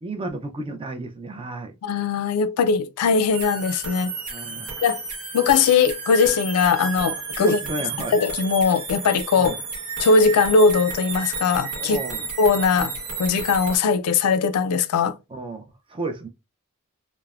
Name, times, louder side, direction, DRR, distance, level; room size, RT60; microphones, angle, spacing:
voice 1, 0.0-1.8 4.3-4.7 7.4-8.2 9.3-9.6 11.7-12.3 15.3-16.3, right 2 dB, 25° right, 0.4 m, -32 dB
voice 2, 1.8-4.1 4.8-5.0 5.3-7.6 8.1-9.5 10.0-12.0 12.4-12.9 13.2-15.2, left 5 dB, 80° left, 0.3 m, -20 dB
sound 1, 3.3-13.8, right 4 dB, 70° right, 1.0 m, -32 dB
3.1 x 2.0 x 2.3 m
head